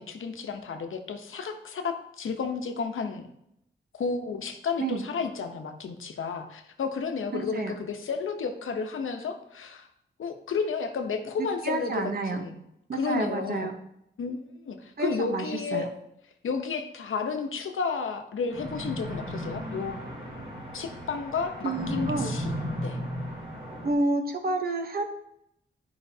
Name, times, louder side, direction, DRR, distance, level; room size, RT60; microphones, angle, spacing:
voice 1, 0.0-3.3 3.9-9.9 10.2-12.6 12.9-13.7 14.2-15.9 16.4-20.0 20.7-23.0, left 5 dB, 90° left, 5 dB, 0.9 m, -32 dB
voice 2, 7.3-7.7 11.4-12.4 12.9-13.8 15.0-15.4 15.7-15.9 21.6-22.3 23.8-25.0, right 3 dB, 50° right, 5 dB, 0.9 m, -29 dB
sound 1, 18.5-23.9, equal, 25° right, 2.2 m, -35 dB
11.5 x 5.0 x 2.8 m, 0.79 s
wide cardioid pair, 175°, 20 cm